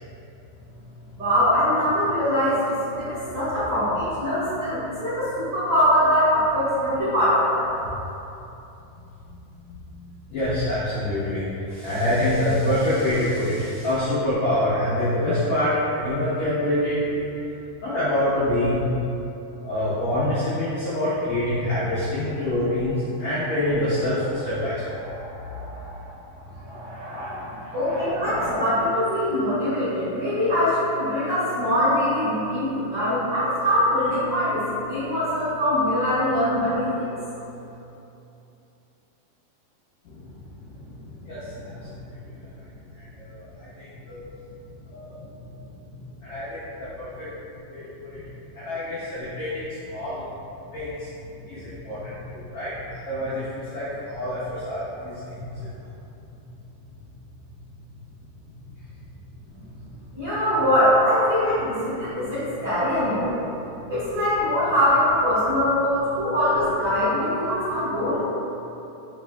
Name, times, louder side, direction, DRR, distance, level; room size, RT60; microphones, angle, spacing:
voice 1, 1.2-7.7 27.7-37.1 60.1-63.4 63.9-68.2, equal, 60° right, -17 dB, 1.5 m, -22 dB
voice 2, 10.3-17.3 17.8-18.9 19.6-26.1 26.4-28.6 40.0-40.2 40.9-42.4 42.9-44.2 44.9-45.5 45.8-45.9 46.2-47.3 47.7-48.2 48.5-50.2 50.7-51.1 51.4-55.1 55.5-55.7, left 1 dB, 80° left, -14 dB, 1.6 m, -27 dB
5.7 x 3.4 x 2.2 m, 2.9 s
omnidirectional pair, 4.7 m